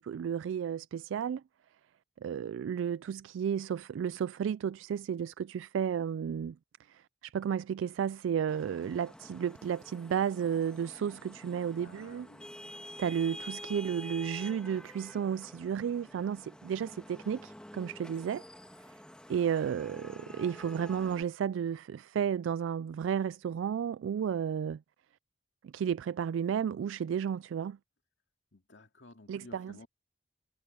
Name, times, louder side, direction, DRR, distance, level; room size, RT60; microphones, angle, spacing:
voice 1, 0.0-1.4 2.2-6.6 6.9-12.3 13.0-18.4 19.3-24.8 25.6-27.8 29.3-29.9, right 8 dB, 85° right, 0.3 m, -33 dB
Vehicle horn car horn honking / Traffic noise roadway noise, 8.5-21.2, left 1 dB, 5° left, 1.8 m, -49 dB
voice 2, 11.8-12.5 28.5-29.9, left 2 dB, 70° left, 2.3 m, -54 dB
head